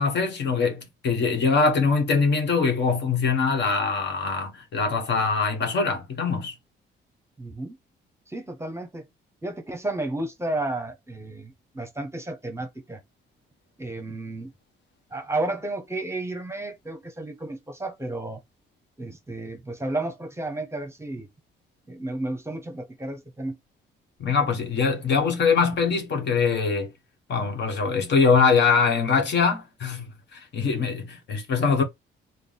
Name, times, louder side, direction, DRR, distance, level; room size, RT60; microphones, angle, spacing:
voice 1, 0.0-6.5 24.2-26.9 27.3-31.8, left 5 dB, 60° left, 1.2 m, -23 dB
voice 2, 7.4-7.8 8.3-9.0 9.4-13.0 13.8-14.5 15.1-18.4 19.0-21.3 21.9-23.6, right 2 dB, 15° right, 0.8 m, -32 dB
3.3 x 2.2 x 4.0 m
cardioid pair, 90°, 20 cm